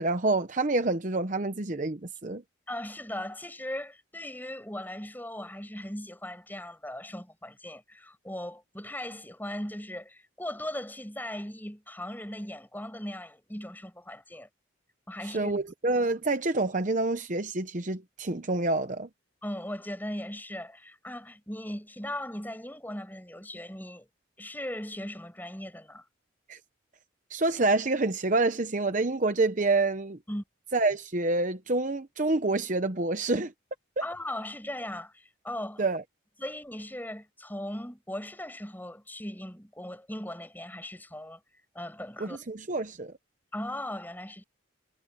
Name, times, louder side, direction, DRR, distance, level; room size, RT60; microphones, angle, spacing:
voice 1, 0.0-2.4 15.3-19.1 26.5-26.6 27.3-30.2 30.7-33.5 34.0-34.1 35.8-36.0 42.2-43.1, right 2 dB, 40° right, 0.9 m, -27 dB
voice 2, 2.7-14.5 15.1-15.5 19.4-24.1 24.4-26.0 30.3-30.4 34.0-35.9 36.4-41.4 41.7-42.4 43.5-44.4, left 1 dB, 10° left, 6.1 m, -38 dB
head